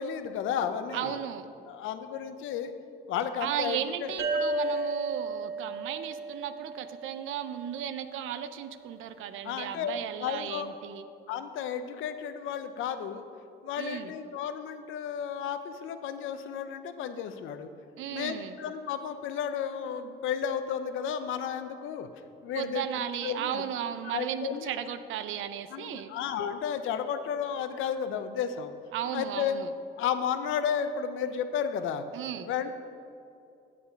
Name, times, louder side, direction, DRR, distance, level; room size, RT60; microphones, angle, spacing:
voice 1, 0.0-1.1 1.7-2.7 3.1-4.1 9.4-9.9 10.2-10.7 11.3-13.2 13.6-17.7 18.1-22.1 22.4-23.6 24.1-24.7 25.7-28.7 29.1-29.6 30.0-32.0 32.5-32.7, left 8 dB, 85° left, 9 dB, 0.6 m, -33 dB
voice 2, 0.9-1.5 3.4-11.0 13.8-14.1 18.0-18.6 22.5-26.1 28.9-29.7 32.1-32.5, right 10 dB, 85° right, 11 dB, 0.5 m, -35 dB
sound 1, 4.2-7.6, right 2 dB, 50° right, 1.6 m, -33 dB
8.4 x 7.3 x 5.1 m, 2.6 s
cardioid pair, 90°, 20 cm